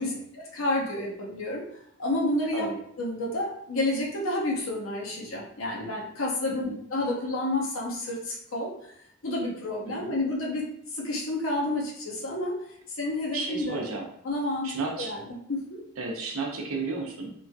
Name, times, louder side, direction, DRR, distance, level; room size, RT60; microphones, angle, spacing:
voice 1, 0.0-1.6 2.0-2.7 3.0-8.7 9.2-10.7 10.9-12.5 12.9-13.8 14.2-14.7 15.0-15.2 15.5-15.8, left 1 dB, 70° left, -1 dB, 0.7 m, -30 dB
voice 2, 6.5-6.8 9.9-10.1 13.3-14.1 14.6-15.1 16.0-17.3, right 3 dB, 75° right, 1 dB, 0.6 m, -33 dB
3.0 x 2.6 x 2.2 m, 0.69 s
head